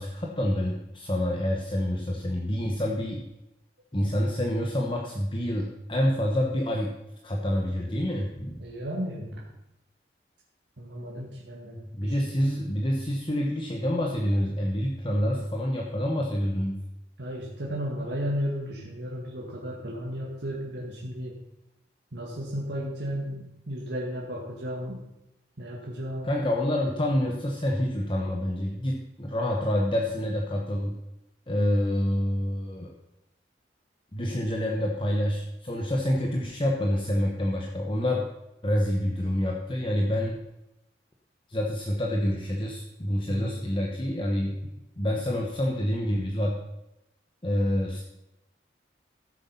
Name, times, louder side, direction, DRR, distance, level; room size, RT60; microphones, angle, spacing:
voice 1, 0.0-3.2 3.9-6.9 7.2-8.6 11.9-16.8 26.2-31.0 31.5-32.9 34.1-38.3 38.6-40.4 41.5-44.6 45.0-46.6 47.4-48.0, equal, 25° left, -1 dB, 1.1 m, -27 dB
voice 2, 8.6-9.4 10.8-12.2 17.2-21.4 22.1-25.0 25.6-26.3 43.3-43.7, equal, 75° right, -3 dB, 2.0 m, -34 dB
14.0 x 8.0 x 5.6 m, 0.91 s
head